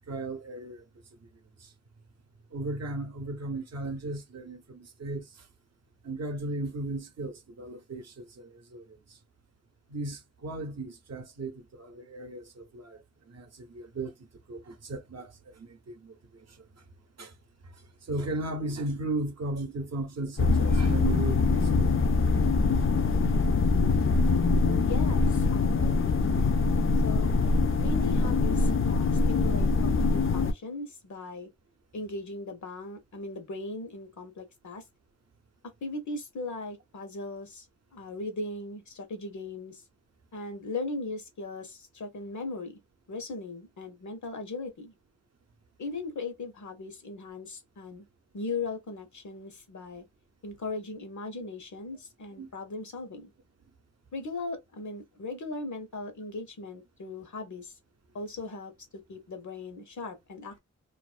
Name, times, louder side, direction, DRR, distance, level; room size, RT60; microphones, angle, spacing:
voice 1, 0.1-0.8 1.6-1.7 2.5-5.3 6.0-9.0 9.9-14.1 14.5-16.5 17.2-17.3 18.1-22.1 24.3-24.5 52.4-52.5, right 2 dB, 60° right, 0.6 m, -36 dB
sound 1, 20.4-30.5, left 3 dB, 45° left, 0.5 m, -24 dB
voice 2, 24.6-26.1 27.0-27.3 27.8-31.5 31.9-34.8 35.8-37.7 37.9-39.8 40.3-42.8 43.1-44.9 45.8-48.1 48.3-50.0 50.4-53.3 54.1-57.7 58.1-60.6, left 3 dB, 75° left, 0.9 m, -38 dB
2.5 x 2.0 x 2.4 m
cardioid pair, 45°, 30 cm